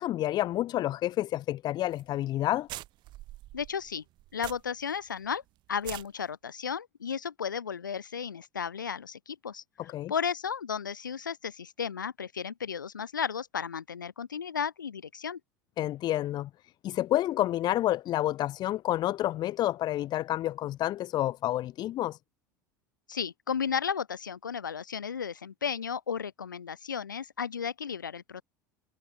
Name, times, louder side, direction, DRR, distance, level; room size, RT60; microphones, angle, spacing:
voice 1, 0.0-2.7 9.9-10.1 15.8-16.5 16.8-22.2, left 14 dB, 45° left, 3.1 m, -29 dB
sound 1, 1.9-2.1 2.3-2.4 2.7-4.9 5.2-5.3 5.7-6.1, right 16 dB, 45° right, 3.9 m, -43 dB
voice 2, 3.5-4.0 4.3-5.4 5.7-15.4 23.1-28.4, left 7 dB, 80° left, 2.7 m, -34 dB
figure-of-eight pair, 75°, 10 cm